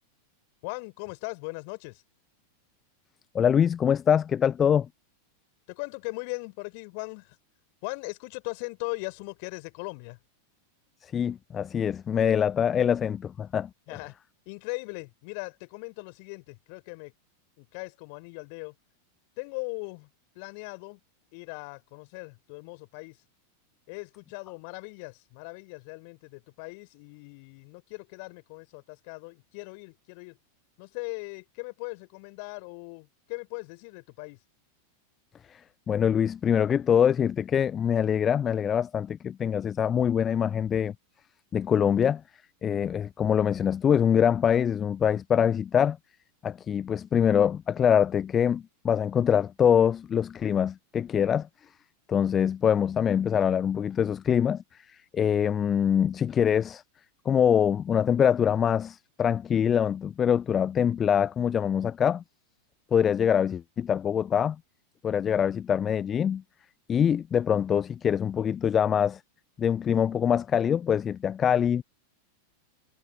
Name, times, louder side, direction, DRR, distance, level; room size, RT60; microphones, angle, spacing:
voice 1, 0.6-2.0 5.7-7.4 7.8-10.2 13.9-14.1 14.5-17.1 17.6-18.8 19.4-20.1 20.3-21.0 21.3-23.2 23.9-30.4 30.8-34.4, left 33 dB, 45° left, 3.9 m, -39 dB
voice 2, 3.3-4.9 11.0-13.7 35.5-40.9 41.5-42.2 42.6-46.0 46.4-51.5 52.1-56.8 57.3-62.2 62.9-64.6 65.0-66.4 66.9-69.2 69.6-71.8, left 8 dB, 25° left, 0.4 m, -24 dB
figure-of-eight pair, 90°, 0 cm